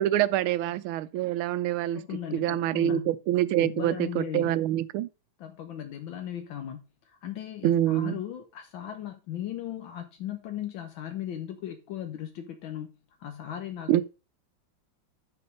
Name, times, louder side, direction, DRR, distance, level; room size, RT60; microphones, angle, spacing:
voice 1, 0.0-2.0 2.3-5.1 7.6-8.2 13.9-14.0, right 12 dB, 85° right, 1.4 m, -26 dB
voice 2, 2.0-3.1 3.6-4.5 5.4-12.9 13.2-14.0, left 10 dB, 75° left, 1.5 m, -37 dB
8.6 x 4.4 x 5.4 m
omnidirectional pair, 2.2 m